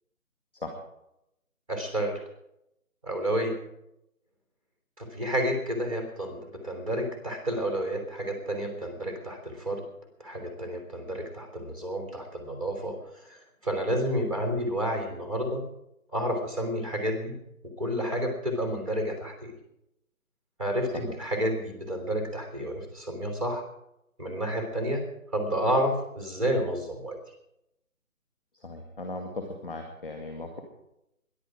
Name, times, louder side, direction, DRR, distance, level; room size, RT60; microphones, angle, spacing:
voice 1, 1.7-2.2 3.0-3.6 5.0-9.8 10.2-15.6 16.1-17.3 17.8-19.5 20.6-23.6 24.2-25.1 25.3-27.2, equal, 25° right, 2 dB, 3.3 m, -30 dB
voice 2, 28.6-30.6, left 2 dB, ahead, 4 dB, 1.4 m, -37 dB
22.5 x 11.0 x 4.9 m, 0.81 s
figure-of-eight pair, 170°, 43 cm